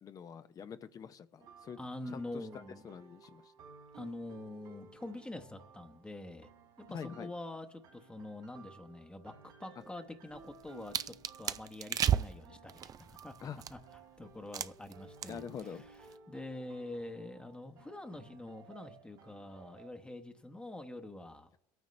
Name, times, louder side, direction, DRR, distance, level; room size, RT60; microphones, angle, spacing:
voice 1, 0.0-1.8 2.1-3.5 6.9-7.3 13.4-13.6 15.3-15.8, left 7 dB, 45° left, 11 dB, 0.6 m, -45 dB
sound 1, 1.4-19.9, right 5 dB, 80° right, 3.2 m, -57 dB
voice 2, 1.8-2.8 3.9-6.5 6.8-13.3 13.7-13.8 14.2-21.6, left 2 dB, 10° left, 6 dB, 1.0 m, -46 dB
sound 2, 10.4-14.0 14.5-14.9 15.2-15.6 15.9-16.1, right 9 dB, 45° right, 0.4 m, -34 dB
22.5 x 9.3 x 3.2 m, 0.85 s
supercardioid pair, 80°, 9 cm